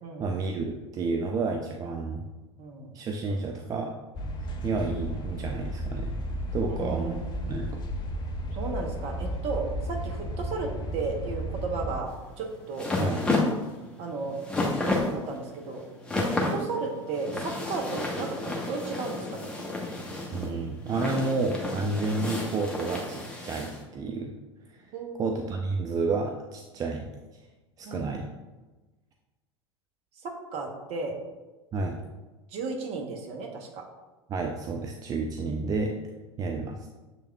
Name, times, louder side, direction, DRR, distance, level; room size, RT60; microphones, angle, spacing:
voice 1, 0.2-2.3 2.9-3.9 4.4-6.2 6.5-7.2 7.5-7.8 13.0-13.2 20.3-24.3 24.7-24.9 25.2-27.4 27.8-28.3 31.7-32.0 34.3-36.0 36.4-36.9, right 3 dB, 25° right, 2 dB, 0.4 m, -30 dB
voice 2, 2.6-2.9 6.7-7.5 8.5-12.1 12.4-12.9 14.0-14.4 14.9-15.8 16.2-18.4 18.7-19.5 24.9-25.3 27.8-28.2 30.2-31.1 32.5-33.9, right 4 dB, 45° right, 3 dB, 0.9 m, -34 dB
sound 1, 4.2-12.0, equal, 30° left, 0.5 m, -34 dB
sound 2, 12.1-23.8, left 2 dB, 5° left, 0.9 m, -31 dB
6.9 x 3.4 x 2.2 m, 1.2 s
figure-of-eight pair, 80°, 15 cm